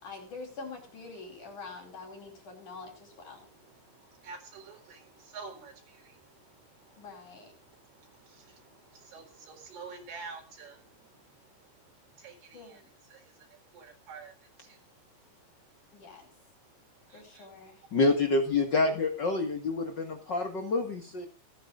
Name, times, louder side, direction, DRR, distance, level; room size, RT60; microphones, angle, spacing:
voice 1, 0.0-3.5 7.0-7.5 12.5-12.9 15.9-16.3 17.1-17.8, left 4 dB, 45° left, 2 dB, 5.9 m, -45 dB
voice 2, 4.2-5.0 5.3-5.7 9.1-10.8 12.2-12.8 13.7-14.3 17.4-17.5, right 4 dB, 60° right, 3 dB, 5.9 m, -45 dB
voice 3, 17.9-21.2, left 3 dB, 80° left, 4 dB, 1.0 m, -27 dB
28.0 x 9.5 x 2.5 m, 0.32 s
omnidirectional pair, 5.3 m